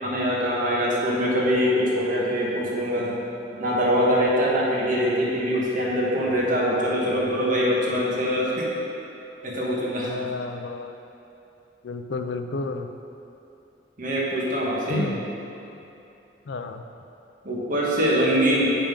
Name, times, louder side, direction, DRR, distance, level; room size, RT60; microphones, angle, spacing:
voice 1, 0.0-3.2 3.6-8.7 9.4-10.1 14.0-15.1 17.4-18.7, equal, 50° right, -5 dB, 1.4 m, -23 dB
voice 2, 10.0-11.0 11.8-12.9 14.9-15.2 16.5-16.9, left 3 dB, 70° left, 7 dB, 0.4 m, -31 dB
7.4 x 5.3 x 5.2 m, 2.8 s
head